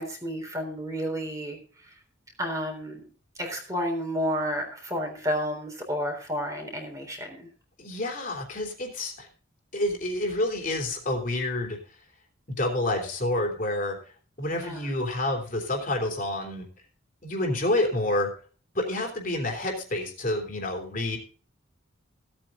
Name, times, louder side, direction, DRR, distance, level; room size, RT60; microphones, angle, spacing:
voice 1, 0.0-1.9 2.4-3.0 3.4-7.5 14.4-14.9, equal, 15° right, 2 dB, 3.8 m, -31 dB
voice 2, 7.8-9.3 9.7-11.8 12.6-14.0 14.4-16.6 17.2-18.3 18.7-21.2, left 1 dB, 40° left, 2 dB, 3.4 m, -28 dB
16.5 x 8.8 x 3.9 m, 0.40 s
head